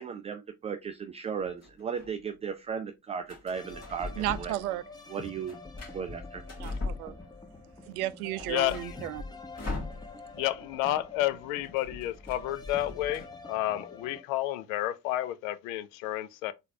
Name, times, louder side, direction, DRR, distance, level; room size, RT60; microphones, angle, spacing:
voice 1, 0.0-4.5 5.1-5.6 5.9-6.4, right 6 dB, 15° right, 0.3 m, -36 dB
sound 1, 1.3-2.1 3.3-4.7 5.0-7.5 7.9-8.0 8.2-10.5 10.7-10.9 11.2-13.2, left 3 dB, 35° left, 1.9 m, -40 dB
sound 2, 3.5-14.2, left 3 dB, 10° left, 0.8 m, -48 dB
voice 2, 4.2-4.8 6.6-7.1 7.9-9.2, right 15 dB, 70° right, 0.5 m, -33 dB
voice 3, 8.5-9.0 10.3-16.5, left 14 dB, 60° left, 0.6 m, -31 dB
3.9 x 3.3 x 2.6 m
figure-of-eight pair, 50°, 46 cm